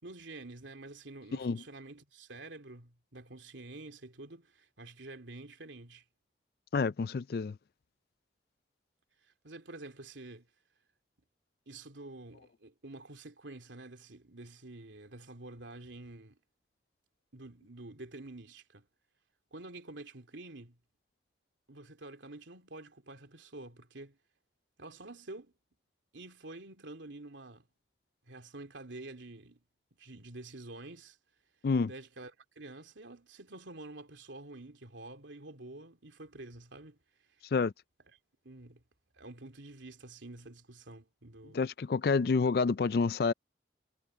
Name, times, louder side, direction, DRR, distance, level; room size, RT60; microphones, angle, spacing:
voice 1, 0.0-6.0 9.2-10.5 11.7-16.4 17.3-18.9 19.5-20.8 21.7-24.2 24.8-25.5 26.1-27.7 28.3-29.6 30.0-31.2 31.8-37.0 37.3-37.4 38.4-38.8 39.1-41.6, right 2 dB, 85° right, 3.0 m, -48 dB
voice 2, 1.3-1.6 6.7-7.6 31.6-31.9 37.5-37.7 41.5-43.3, left 4 dB, 55° left, 0.4 m, -28 dB
head